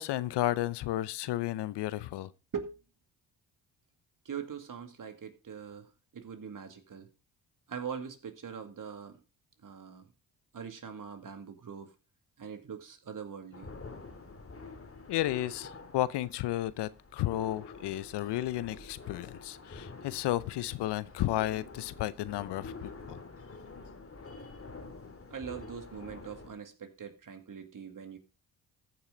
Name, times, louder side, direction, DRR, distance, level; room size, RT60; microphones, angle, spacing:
voice 1, 0.0-2.3 15.1-23.2, left 14 dB, 70° left, 0.7 m, -33 dB
voice 2, 4.2-7.1 7.7-9.2 9.6-10.1 10.5-11.9 12.4-13.7 21.4-21.5 25.3-28.2, right 7 dB, 50° right, 2.3 m, -42 dB
sound 1, 13.5-26.5, left 3 dB, 30° left, 2.1 m, -47 dB
14.5 x 5.7 x 3.9 m
supercardioid pair, 55°, 42 cm